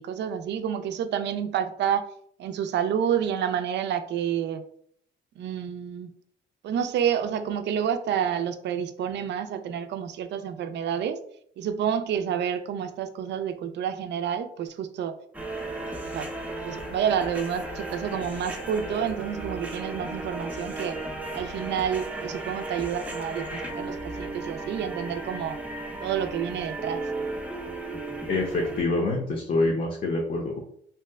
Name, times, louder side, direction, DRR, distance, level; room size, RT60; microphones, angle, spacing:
voice 1, 0.0-2.0 2.4-4.6 5.4-6.2 6.6-11.2 11.6-15.2 16.1-16.3 16.6-21.0 21.3-25.6 26.0-27.0, right 8 dB, 65° right, 9 dB, 0.4 m, -29 dB
sound 1, 15.3-28.8, right 2 dB, 5° right, 0.6 m, -35 dB
voice 2, 28.3-30.6, left 2 dB, 45° left, -2 dB, 0.7 m, -26 dB
2.8 x 2.1 x 3.4 m, 0.66 s
cardioid pair, 90°, 20 cm